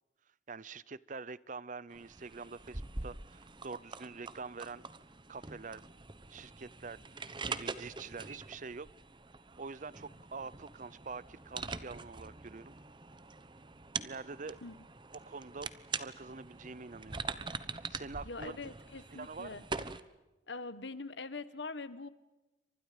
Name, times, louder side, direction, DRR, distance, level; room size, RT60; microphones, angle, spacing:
voice 1, 0.5-4.8 5.3-5.8 6.3-8.9 9.6-12.7 14.0-14.6 15.3-15.7 16.0-17.2 17.9-18.5 19.1-19.7, right 4 dB, 45° right, 20 dB, 0.7 m, -45 dB
sound 1, 1.9-20.0, right 4 dB, 25° right, 1.1 m, -44 dB
voice 2, 18.2-19.6 20.5-22.1, left 3 dB, 80° left, 14 dB, 1.5 m, -43 dB
30.0 x 25.5 x 5.3 m, 1.1 s
head